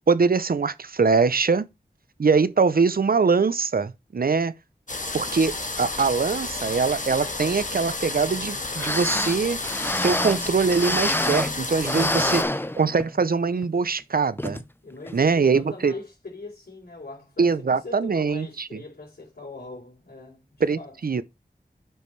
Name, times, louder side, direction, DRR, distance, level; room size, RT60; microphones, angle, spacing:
voice 1, 0.1-1.7 2.2-4.5 5.1-9.6 10.0-12.4 12.8-14.6 15.1-15.9 17.4-18.8 20.6-21.2, right 5 dB, 65° right, 0.6 m, -22 dB
sound 1, 4.9-12.4, left 2 dB, 50° left, 1.5 m, -31 dB
sound 2, 8.5-8.6 8.8-11.6 11.8-13.2 13.6-13.7 14.4-14.6 15.1-15.2, left 1 dB, 15° left, 0.7 m, -26 dB
voice 2, 14.8-21.0, left 2 dB, 80° left, 3.5 m, -42 dB
8.9 x 5.2 x 3.2 m
wide cardioid pair, 40°, 16 cm